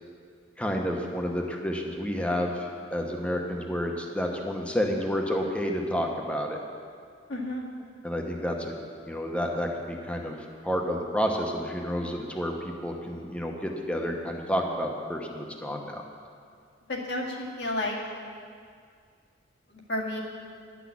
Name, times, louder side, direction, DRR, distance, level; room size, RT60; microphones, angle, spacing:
voice 1, 0.6-6.6 8.0-8.8 9.1-10.4 10.6-16.0, equal, 5° left, 1 dB, 1.0 m, -30 dB
voice 2, 7.3-7.7 16.9-18.0 19.9-20.2, left 1 dB, 65° left, -2 dB, 1.9 m, -31 dB
11.0 x 6.1 x 8.6 m, 2.2 s
head